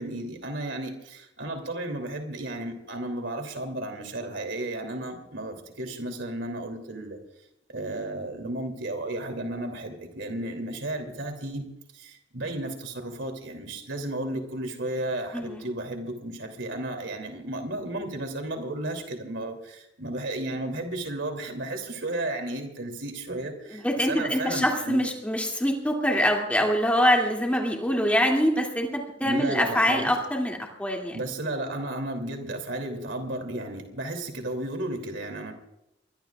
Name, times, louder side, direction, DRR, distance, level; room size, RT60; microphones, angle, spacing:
voice 1, 0.0-7.2 7.7-11.7 11.9-25.1 29.2-30.1 31.1-35.5, right 1 dB, 75° right, 4 dB, 3.0 m, -33 dB
voice 2, 15.3-15.6 23.7-31.2, equal, 10° left, 0 dB, 2.6 m, -24 dB
23.5 x 22.5 x 2.4 m, 0.85 s
head